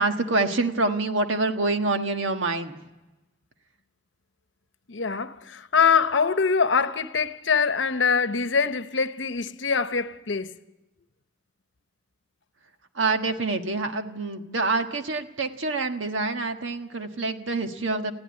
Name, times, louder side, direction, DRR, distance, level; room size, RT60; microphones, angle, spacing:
voice 1, 0.0-2.8 12.9-18.1, right 3 dB, 85° right, 1.5 m, -26 dB
voice 2, 4.9-10.6, left 5 dB, 75° left, 0.9 m, -24 dB
20.0 x 15.0 x 9.8 m
head